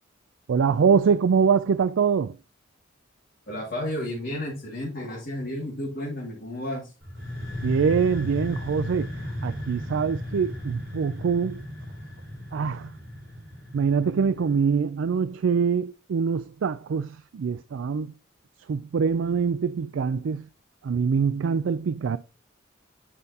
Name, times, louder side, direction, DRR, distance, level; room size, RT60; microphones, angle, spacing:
voice 1, 0.5-2.4 7.6-9.1 9.4-11.6 12.5-13.0 13.7-18.1 18.7-20.5 20.8-22.2, right 6 dB, 75° right, 0.4 m, -24 dB
voice 2, 3.5-6.9, left 1 dB, 50° left, 2.3 m, -32 dB
sound 1, 7.0-14.7, left 1 dB, 50° right, 4.5 m, -35 dB
8.4 x 5.4 x 2.8 m
head